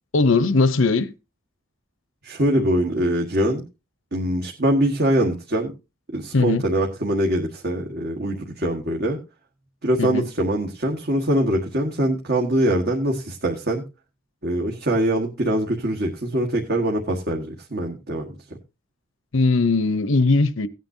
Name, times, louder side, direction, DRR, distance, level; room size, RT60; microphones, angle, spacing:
voice 1, 0.1-1.1 6.3-6.6 10.0-10.2 19.3-20.7, left 3 dB, 70° left, 0.9 m, -19 dB
voice 2, 2.2-3.6 4.1-5.7 6.1-9.2 9.8-13.8 14.4-18.3, right 1 dB, 50° right, 1.6 m, -23 dB
17.0 x 9.2 x 2.8 m
head